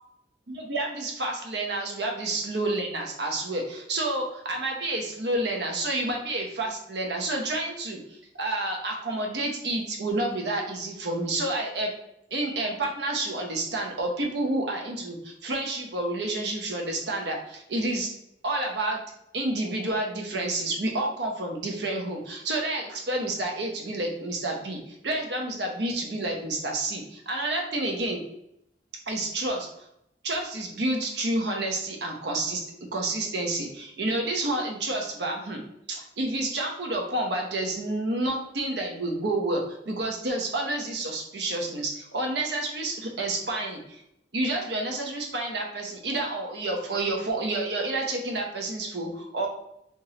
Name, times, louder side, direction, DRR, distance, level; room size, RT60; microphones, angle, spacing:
voice 1, 0.5-11.9 12.3-18.1 18.4-19.0 19.3-28.2 29.1-29.7 30.2-32.6 32.9-35.6 35.9-44.0 44.3-49.5, right 2 dB, 75° right, 1 dB, 0.8 m, -29 dB
3.5 x 3.0 x 2.8 m, 0.79 s
head